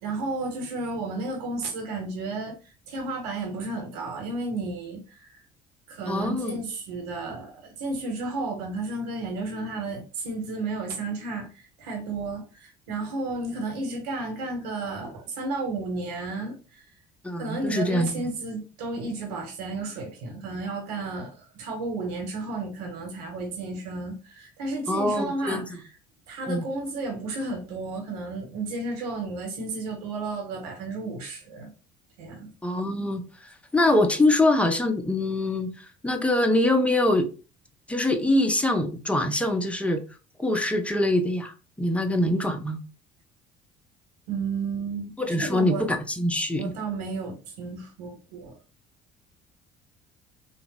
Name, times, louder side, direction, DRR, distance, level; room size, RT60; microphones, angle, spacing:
voice 1, 0.0-2.5 2.9-5.4 5.9-16.8 17.4-25.8 26.3-31.7 32.2-32.5 44.3-45.1 45.4-45.9 46.6-48.6, right 3 dB, 75° right, 0.9 m, -32 dB
voice 2, 6.1-6.5 17.2-18.3 24.9-25.6 26.5-26.7 32.6-37.3 37.9-40.0 40.4-42.8 45.2-46.7, left 1 dB, 5° left, 0.7 m, -24 dB
3.7 x 2.1 x 2.9 m
hypercardioid pair, 55°, 20 cm